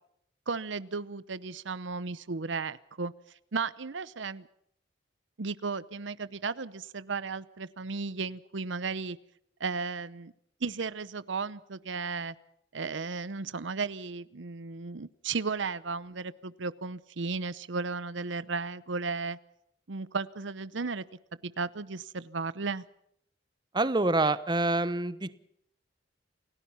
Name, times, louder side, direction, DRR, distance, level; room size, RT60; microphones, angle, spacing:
voice 1, 0.5-3.1 3.5-4.5 5.4-9.2 9.6-10.3 10.6-12.3 12.7-19.4 19.9-21.0 21.4-22.8, right 4 dB, 75° right, 17 dB, 0.8 m, -34 dB
voice 2, 23.7-25.3, right 2 dB, 25° right, 15 dB, 0.9 m, -26 dB
28.5 x 17.5 x 5.7 m, 0.71 s
head